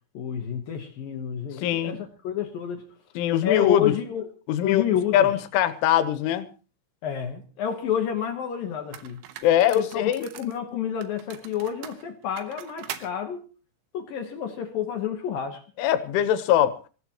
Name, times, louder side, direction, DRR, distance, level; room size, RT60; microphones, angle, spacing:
voice 1, 0.1-2.9 3.4-4.3 4.6-5.3 7.0-9.2 9.8-13.4 13.9-15.6, left 9 dB, 65° left, 2.5 m, -29 dB
voice 2, 1.6-2.0 3.2-3.9 4.5-4.8 5.1-6.5 9.4-10.3 15.8-16.8, left 11 dB, 85° left, 3.6 m, -22 dB
sound 1, 8.3-8.4 8.9-10.6 11.0-13.1, right 11 dB, 80° right, 3.4 m, -41 dB
26.0 x 16.0 x 3.0 m
omnidirectional pair, 5.5 m